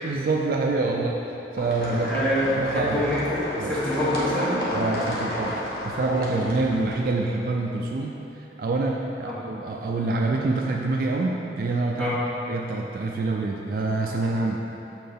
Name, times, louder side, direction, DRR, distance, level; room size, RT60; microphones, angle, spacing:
voice 1, 0.0-2.3 2.5-3.0 3.5-3.8 4.7-8.1 8.6-12.1 12.5-14.6, right 3 dB, 50° right, 0 dB, 0.3 m, -26 dB
sound 1, 1.6-7.0, equal, 55° left, 1.0 m, -31 dB
voice 2, 2.0-4.6 9.2-9.4 12.0-12.2 14.4-14.5, equal, 5° left, -9 dB, 1.1 m, -26 dB
6.6 x 4.3 x 3.4 m, 3.0 s
head